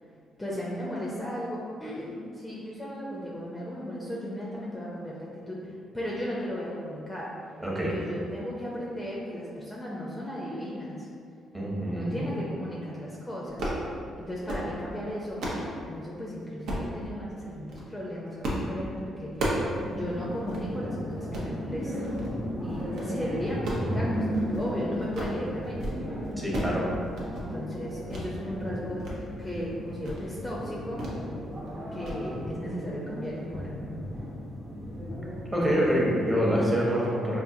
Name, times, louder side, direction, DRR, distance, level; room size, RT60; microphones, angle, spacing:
voice 1, 0.4-7.3 7.9-11.1 11.8-13.7 14.2-19.6 19.9-22.1 22.6-26.0 27.3-31.0 31.9-33.7, equal, 15° left, -5 dB, 0.5 m, -36 dB
voice 2, 7.6-8.0 11.5-12.3 26.4-26.9 35.5-37.4, equal, 15° right, -5 dB, 0.9 m, -26 dB
sound 1, 13.5-13.8 14.3-14.7 15.1-15.7 16.7-16.9 17.5-17.9 18.4-18.7 19.0-19.7 20.1-20.2 20.5-20.6 21.2-21.5 22.0-22.3 22.7-23.1 23.5-24.7 25.0-25.4 25.7-26.0 26.2-26.8 27.1-27.5 28.1-28.3 28.7-29.2 29.5-29.6 30.0-30.3 31.0-31.2 31.5-31.7 32.0-32.2, right 1 dB, 75° right, 0.7 m, -33 dB
sound 2, 19.5-36.6, equal, 45° right, 1.0 m, -35 dB
3.7 x 2.5 x 2.7 m, 2.4 s
cardioid pair, 90°, 0 cm